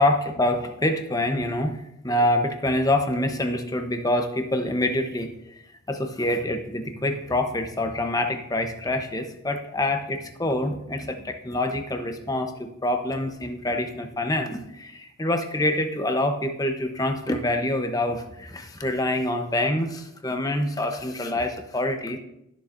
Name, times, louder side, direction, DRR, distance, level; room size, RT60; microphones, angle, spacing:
voice 1, 0.0-5.6 5.9-22.2, left 1 dB, 15° left, 5 dB, 0.8 m, -26 dB
17.5 x 7.1 x 2.6 m, 0.83 s
head